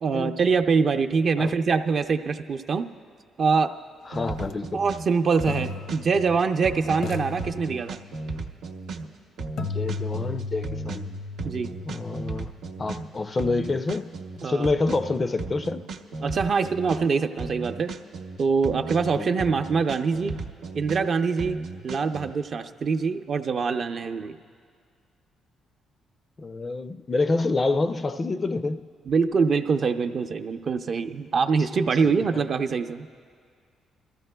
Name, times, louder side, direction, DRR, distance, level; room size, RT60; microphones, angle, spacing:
voice 1, 0.0-2.8 3.4-3.7 4.7-8.0 11.4-11.8 14.4-14.7 16.2-17.9 18.4-20.4 20.7-21.6 21.8-24.4 29.1-33.1, right 5 dB, 50° right, 0.5 m, -24 dB
voice 2, 4.1-4.8 9.6-11.0 11.8-12.5 12.8-15.9 19.2-19.3 26.4-28.8 32.0-32.4, left 3 dB, 35° left, 0.4 m, -27 dB
sound 1, 4.1-22.3, right 3 dB, 80° right, 0.8 m, -35 dB
sound 2, 4.4-4.5 5.5-6.6 7.0-8.3 9.6-13.5, left 4 dB, 80° left, 0.9 m, -36 dB
26.0 x 14.0 x 2.2 m
cardioid pair, 90°, 0 cm